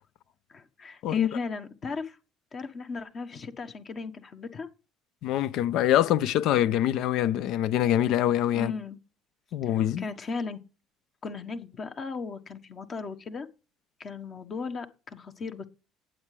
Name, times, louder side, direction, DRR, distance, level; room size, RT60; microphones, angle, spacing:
voice 1, 0.5-2.2 2.5-4.7 8.5-9.0 9.6-10.6 11.2-13.5 14.0-15.6, left 4 dB, 45° left, 1.4 m, -37 dB
voice 2, 5.2-8.7 9.5-10.0, left 11 dB, 70° left, 0.6 m, -24 dB
18.0 x 7.6 x 3.3 m
hypercardioid pair, 65°, 0 cm